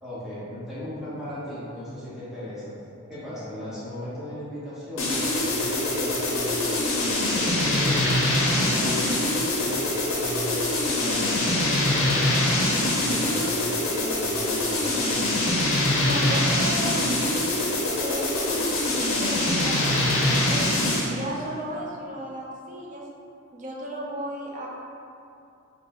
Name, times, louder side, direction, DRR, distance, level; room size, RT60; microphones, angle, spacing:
voice 1, 0.0-2.7 3.1-8.1 8.5-9.1 9.6-15.5, left 1 dB, ahead, -11 dB, 0.9 m, -37 dB
sound 1, 5.0-21.2, left 1 dB, 85° left, 0.7 m, -24 dB
voice 2, 16.0-17.1 17.9-20.7 21.1-23.0 23.5-24.7, right 1 dB, 40° right, -2 dB, 0.5 m, -34 dB
5.2 x 2.1 x 2.9 m, 2.6 s
head